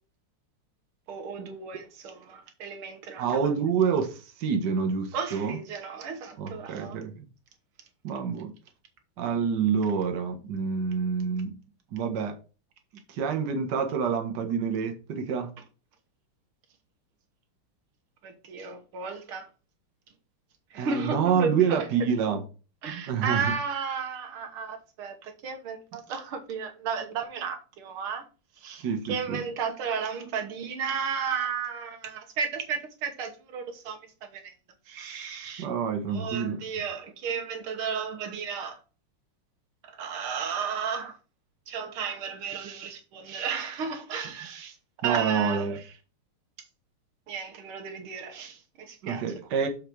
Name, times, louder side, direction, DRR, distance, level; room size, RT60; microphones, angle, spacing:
voice 1, 1.1-3.5 5.1-7.0 18.2-19.5 20.7-21.9 22.8-28.2 28.6-34.0 34.3-34.5 34.9-35.7 36.1-38.8 39.8-41.1 41.7-44.8 45.0-45.8 47.3-49.3, right 6 dB, 75° right, 2.0 m, -34 dB
voice 2, 3.2-5.6 6.4-7.3 8.0-8.5 9.2-11.5 11.9-12.4 13.1-15.5 20.7-22.4 22.9-23.5 28.8-29.4 35.6-36.6 45.0-45.8 49.0-49.7, right 6 dB, 60° right, 1.5 m, -27 dB
7.1 x 4.7 x 4.5 m
omnidirectional pair, 2.4 m